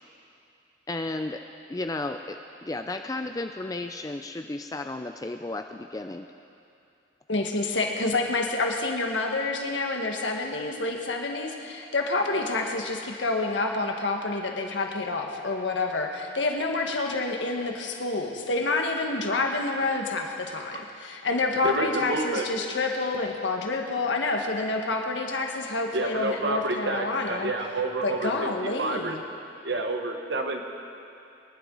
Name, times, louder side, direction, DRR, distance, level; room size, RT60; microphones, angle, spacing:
voice 1, 0.9-1.4 1.7-6.3, left 2 dB, 20° left, 6 dB, 0.3 m, -33 dB
voice 2, 7.3-27.5 28.0-29.2, left 3 dB, 75° left, 2 dB, 1.6 m, -28 dB
voice 3, 21.6-22.5 25.9-28.5 28.8-29.2 29.6-30.7, right 2 dB, 65° right, 4 dB, 1.3 m, -29 dB
24.0 x 11.0 x 4.0 m, 2.6 s
head